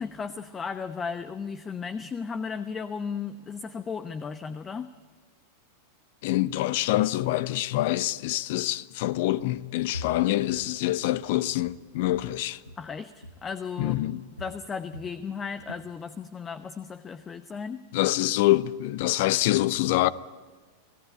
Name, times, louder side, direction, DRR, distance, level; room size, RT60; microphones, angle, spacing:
voice 1, 0.0-4.9 12.8-14.0 14.4-17.8, left 6 dB, 20° left, 0.9 m, -35 dB
voice 2, 6.2-12.6 13.8-14.3 17.9-20.1, left 16 dB, 50° left, 0.7 m, -25 dB
Walk footsteps, 9.4-9.7 9.9-13.0 13.2-13.5 13.8-15.2 15.5-15.9, left 2 dB, 85° left, 1.4 m, -44 dB
27.5 x 17.5 x 9.0 m
figure-of-eight pair, 90°, 0 cm